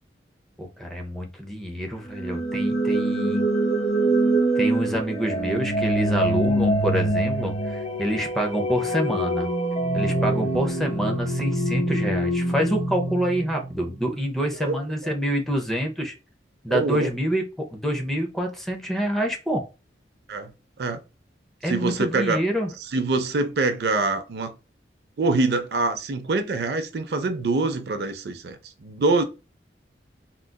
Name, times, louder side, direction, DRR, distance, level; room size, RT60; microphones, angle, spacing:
voice 1, 0.6-3.4 4.6-9.5 9.9-16.1 16.6-19.6 21.6-22.7, equal, ahead, 0.6 m, -27 dB
sound 1, 2.1-14.0, right 1 dB, 35° left, 0.9 m, -25 dB
voice 2, 16.7-17.1 20.3-20.5 20.8-21.0 21.7-22.4 22.9-24.5 25.2-29.2, right 3 dB, 65° right, 0.5 m, -24 dB
3.7 x 2.4 x 2.2 m
head